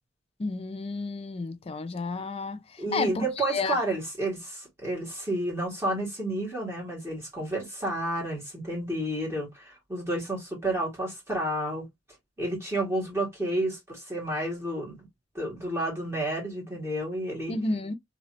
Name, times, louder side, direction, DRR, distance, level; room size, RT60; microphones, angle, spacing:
voice 1, 0.4-3.8 17.5-17.9, left 3 dB, 30° left, 0.4 m, -31 dB
voice 2, 2.8-11.9 12.4-15.0 15.3-17.5, right 1 dB, 15° right, 1.9 m, -30 dB
3.1 x 2.8 x 2.7 m
head